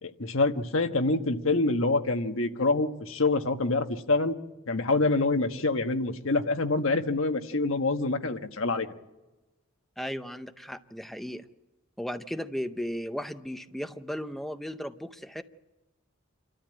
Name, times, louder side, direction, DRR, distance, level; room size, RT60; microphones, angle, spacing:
voice 1, 0.0-4.3 4.7-8.9, left 3 dB, 80° left, 7 dB, 1.4 m, -26 dB
voice 2, 10.0-11.5 12.0-15.4, equal, ahead, 9 dB, 0.6 m, -35 dB
27.5 x 13.0 x 8.9 m, 1.1 s
head